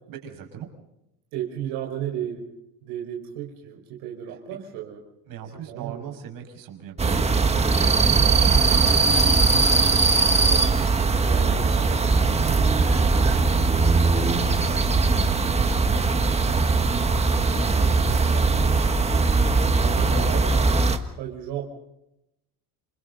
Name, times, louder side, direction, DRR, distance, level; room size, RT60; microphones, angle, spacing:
voice 1, 0.1-0.7 5.3-9.2 11.1-18.8, right 8 dB, 55° right, 3 dB, 6.2 m, -39 dB
voice 2, 1.3-2.4 2.8-5.0 5.7-6.2 10.5-10.7 11.2-11.6 19.8-20.8 21.2-21.6, right 10 dB, 75° right, 0 dB, 5.2 m, -33 dB
sound 1, 7.0-21.0, right 3 dB, 15° right, 1.5 m, -20 dB
29.5 x 27.0 x 4.0 m, 0.86 s
cardioid pair, 155°, 41 cm